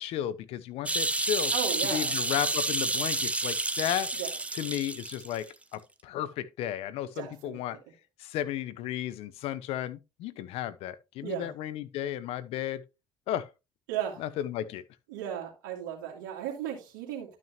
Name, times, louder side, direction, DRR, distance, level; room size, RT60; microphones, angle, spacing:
voice 1, 0.0-1.5 1.9-4.1 4.5-7.8 8.2-12.8 13.3-13.5 14.2-14.8, left 12 dB, 70° left, 0.8 m, -34 dB
sound 1, 0.9-5.4 5.7-5.8, right 2 dB, 10° right, 0.9 m, -30 dB
voice 2, 1.5-2.2 4.1-4.3 7.1-7.6 11.2-11.5 13.9-14.2 15.1-17.4, right 10 dB, 85° right, 2.2 m, -35 dB
12.0 x 6.1 x 3.0 m
supercardioid pair, 70°, 10 cm